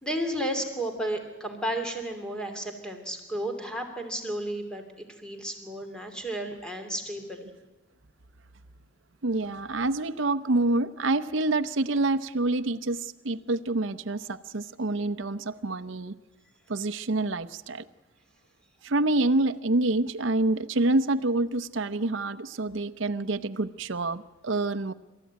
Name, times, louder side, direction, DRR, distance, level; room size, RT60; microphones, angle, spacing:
voice 1, 0.0-4.8 5.2-7.5, right 1 dB, 5° left, 4 dB, 2.7 m, -33 dB
voice 2, 9.2-16.1 16.7-17.8 18.8-24.9, right 2 dB, 65° right, 9 dB, 0.8 m, -27 dB
27.5 x 14.0 x 9.3 m, 1.1 s
head